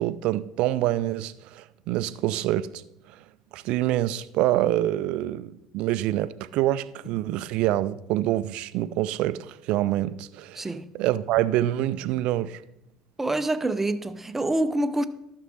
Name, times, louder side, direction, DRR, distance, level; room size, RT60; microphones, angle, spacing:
voice 1, 0.0-2.8 3.1-3.2 3.5-12.6, right 14 dB, 55° right, 0.4 m, -26 dB
voice 2, 10.6-10.9 13.2-15.0, right 1 dB, 15° right, 0.6 m, -26 dB
12.5 x 6.3 x 4.2 m
figure-of-eight pair, 65°, 2 cm